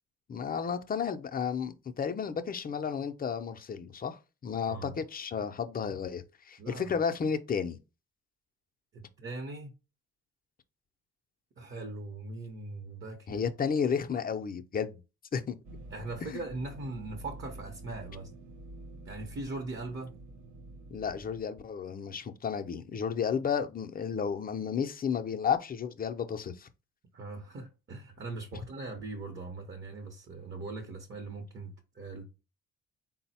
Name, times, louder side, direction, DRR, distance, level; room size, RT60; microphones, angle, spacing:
voice 1, 0.3-7.8 13.3-15.0 15.3-15.5 16.3-16.4 20.9-26.7, left 6 dB, 30° left, 0.5 m, -32 dB
voice 2, 6.6-6.9 8.9-9.7 11.6-13.4 15.9-18.3 19.1-20.1 27.1-32.3, right 2 dB, 40° right, 0.8 m, -40 dB
sound 1, 15.6-21.5, right 2 dB, 75° right, 0.7 m, -48 dB
3.9 x 2.0 x 4.1 m
cardioid pair, 90°, 30 cm